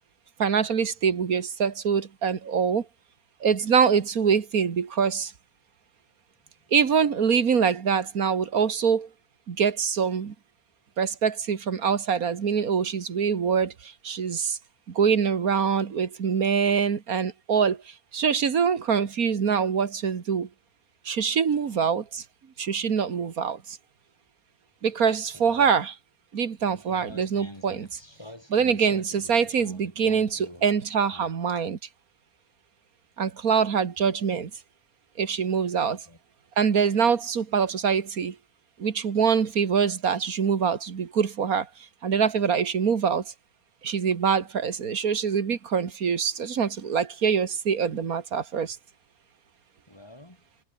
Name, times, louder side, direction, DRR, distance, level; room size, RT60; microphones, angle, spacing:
voice 1, 0.4-2.9 3.4-5.3 6.7-9.1 9.5-10.3 11.0-14.6 14.9-20.5 21.1-22.2 22.6-23.8 24.8-25.9 26.3-27.9 28.5-31.8 33.2-34.5 35.2-36.0 36.6-38.4 38.8-41.7 42.0-43.2 43.8-48.8, right 6 dB, 75° right, 2.1 m, -24 dB
voice 2, 21.6-22.0 25.3-25.9 26.7-30.7 31.1-31.3 34.3-34.5 35.9-36.2 49.9-50.5, left 1 dB, 15° left, 4.5 m, -46 dB
omnidirectional pair, 1.5 m